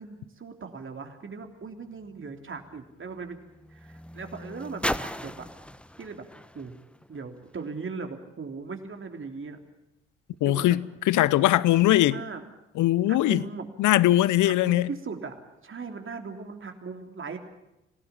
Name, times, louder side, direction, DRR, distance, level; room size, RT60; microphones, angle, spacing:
voice 1, 0.0-3.4 3.7-5.4 6.0-6.2 6.5-6.8 7.1-9.6 10.4-10.8 11.9-12.4 13.1-13.7 14.4-15.3 15.6-17.4, right 4 dB, 35° right, 3.4 m, -38 dB
sound 1, 1.3-7.8 8.6-8.7, left 1 dB, 5° left, 1.3 m, -39 dB
voice 2, 10.4-10.8 11.1-12.2 12.8-13.4 13.8-14.9, left 15 dB, 60° left, 0.9 m, -21 dB
26.5 x 17.5 x 8.5 m
hypercardioid pair, 50°, 35 cm